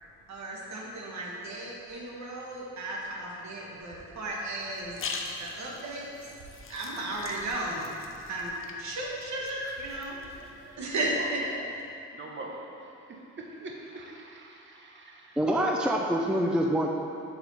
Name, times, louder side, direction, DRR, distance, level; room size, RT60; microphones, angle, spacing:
voice 1, 0.3-5.0 5.4-6.1 6.7-7.9 8.3-8.5 8.8-10.1 10.6-11.7, right 1 dB, 65° right, -2 dB, 1.3 m, -34 dB
sound 1, 4.6-10.7, left 4 dB, 45° left, 0.7 m, -43 dB
voice 2, 10.1-10.5 10.8-11.3 12.1-12.6 13.1-15.4, right 2 dB, 40° right, 0 dB, 1.0 m, -44 dB
voice 3, 15.4-16.9, equal, 5° right, 0 dB, 0.4 m, -25 dB
6.9 x 4.4 x 4.1 m, 2.7 s
cardioid pair, 90°, 30 cm